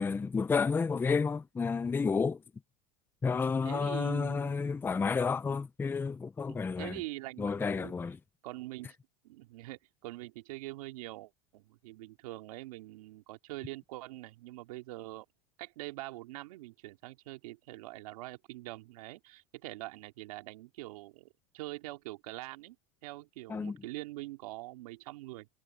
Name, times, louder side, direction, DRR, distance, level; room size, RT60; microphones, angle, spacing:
voice 1, 0.0-2.4 3.2-7.0 7.4-8.2 23.5-23.8, left 5 dB, 10° left, 0.5 m, -31 dB
voice 2, 3.3-4.9 6.5-8.0 8.4-8.9 9.2-15.3 15.6-21.3 21.5-22.8 23.0-25.5, right 19 dB, 75° right, 2.5 m, -44 dB
supercardioid pair, 125°, 19 cm